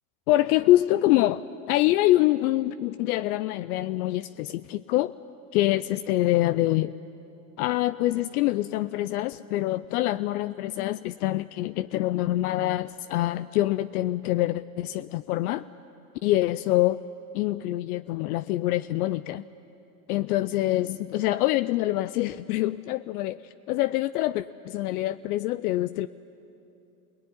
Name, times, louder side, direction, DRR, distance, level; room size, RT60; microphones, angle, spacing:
voice 1, 0.3-5.1 5.5-6.9 7.6-15.7 16.2-17.0 17.3-19.4 20.1-26.1, left 16 dB, 75° left, 13 dB, 0.6 m, -25 dB
25.0 x 18.5 x 9.9 m, 2.8 s
hypercardioid pair, 100°, 45 cm